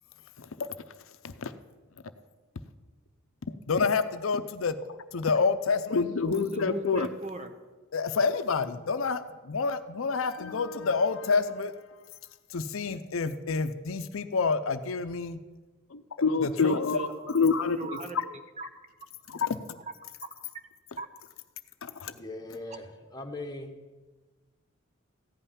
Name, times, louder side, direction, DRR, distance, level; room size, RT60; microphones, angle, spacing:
voice 1, 0.4-0.8 1.2-1.5 3.5-7.1 7.9-11.7 12.5-15.4 15.9-18.0 19.3-19.6 21.8-22.1, left 4 dB, 70° left, 11 dB, 0.6 m, -28 dB
voice 2, 6.3-7.5 16.5-17.3 17.7-18.7 21.0-21.1, right 2 dB, 30° right, 7 dB, 0.9 m, -38 dB
voice 3, 22.1-22.9 23.1-23.7, left 2 dB, 20° left, 3 dB, 1.3 m, -39 dB
15.0 x 5.6 x 10.0 m, 1.3 s
head